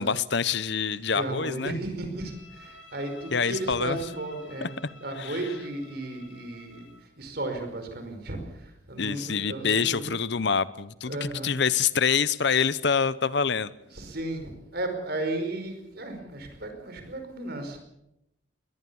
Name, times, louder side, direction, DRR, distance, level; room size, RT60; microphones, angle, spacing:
voice 1, 0.0-1.8 3.3-4.0 4.6-4.7 5.2-5.4 9.0-13.7, left 6 dB, 60° left, 17 dB, 0.8 m, -26 dB
voice 2, 1.0-10.1 11.0-11.6 13.8-17.8, right 2 dB, 55° right, 6 dB, 5.2 m, -35 dB
Bowed string instrument, 2.1-7.1, left 2 dB, 80° left, 3.8 m, -51 dB
22.0 x 19.0 x 7.1 m, 0.85 s
head